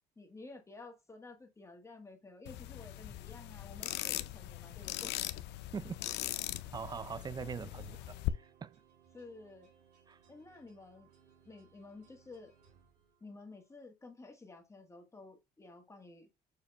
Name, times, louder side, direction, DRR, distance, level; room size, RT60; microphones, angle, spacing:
voice 1, 0.2-5.2 7.7-8.1 9.1-9.7 10.3-11.1 11.4-12.5 13.2-16.3, left 3 dB, 15° left, 1.4 m, -52 dB
sound 1, 2.5-8.3, left 16 dB, 85° left, 0.5 m, -40 dB
sound 2, 3.0-13.7, right 7 dB, 80° right, 3.3 m, -67 dB
voice 2, 5.7-6.1 6.7-8.8 10.1-10.2, right 6 dB, 25° right, 0.4 m, -42 dB
6.7 x 2.8 x 5.1 m
cardioid pair, 110°, 17 cm